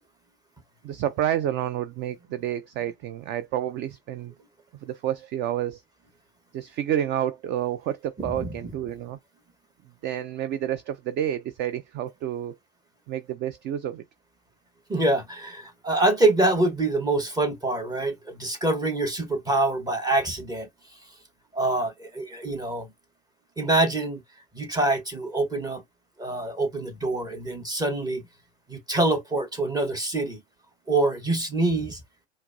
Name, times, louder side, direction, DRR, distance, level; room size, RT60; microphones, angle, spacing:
voice 1, 0.8-4.3 4.8-5.8 6.5-9.2 10.0-12.6 13.1-14.0 22.5-22.6, right 11 dB, 35° right, 0.4 m, -29 dB
voice 2, 8.2-8.5 14.9-20.7 21.5-22.9 23.6-24.2 24.5-25.8 26.2-28.2 28.7-30.4 30.9-32.0, right 2 dB, 10° right, 1.1 m, -25 dB
4.4 x 2.0 x 2.5 m
hypercardioid pair, 100°, 34 cm